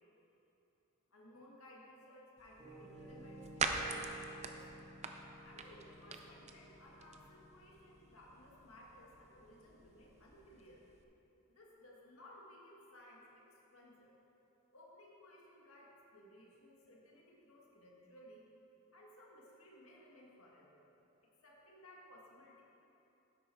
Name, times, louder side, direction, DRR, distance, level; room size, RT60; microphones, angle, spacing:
voice 1, 1.1-4.8 5.5-10.8 11.5-14.1 14.7-18.5 18.9-20.8 21.4-22.6, left 1 dB, 75° left, -3 dB, 1.6 m, -59 dB
sound 1, 2.4-11.0, right 4 dB, 30° right, 0.5 m, -45 dB
Piano, 2.6-10.4, right 2 dB, 15° right, 1.7 m, -55 dB
10.5 x 7.9 x 4.4 m, 3.0 s
head